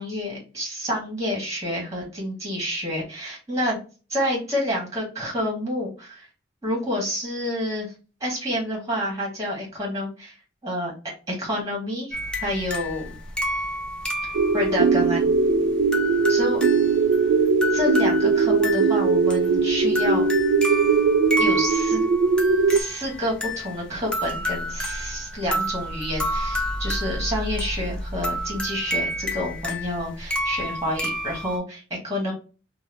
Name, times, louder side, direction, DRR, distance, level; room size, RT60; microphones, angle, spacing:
voice 1, 0.0-3.8 4.1-6.3 6.6-7.9 8.2-10.4 10.6-10.9 11.3-13.2 14.5-15.3 16.3-16.6 17.7-20.3 21.4-22.1 22.7-32.3, left 1 dB, 20° right, -2 dB, 1.3 m, -28 dB
sound 1, 12.1-31.6, equal, 5° left, 0.5 m, -30 dB
sound 2, 14.3-22.8, right 4 dB, 75° right, 0.3 m, -20 dB
2.8 x 2.2 x 3.2 m, 0.34 s
head